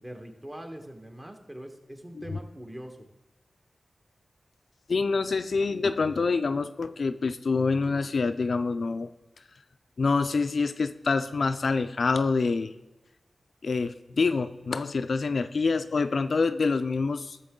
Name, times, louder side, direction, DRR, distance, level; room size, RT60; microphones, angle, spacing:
voice 1, 0.0-3.0, right 1 dB, 25° right, 4 dB, 1.4 m, -42 dB
voice 2, 4.9-9.1 10.0-12.7 13.6-17.5, left 4 dB, 70° left, 11 dB, 0.4 m, -26 dB
12.5 x 6.9 x 3.7 m, 1.0 s
cardioid pair, 45°, 0 cm